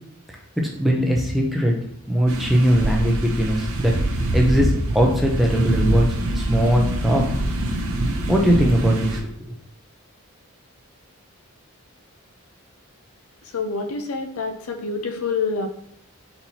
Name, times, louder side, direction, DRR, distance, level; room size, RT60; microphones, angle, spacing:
voice 1, 0.6-1.7 2.1-3.9 4.3-6.1 6.3-7.2 8.3-9.5, equal, ahead, -1 dB, 0.6 m, -20 dB
sound 1, 2.3-9.2, right 1 dB, 75° right, 0.6 m, -24 dB
voice 2, 13.5-15.7, left 4 dB, 75° left, 4 dB, 0.6 m, -27 dB
4.3 x 4.3 x 2.8 m, 0.71 s
head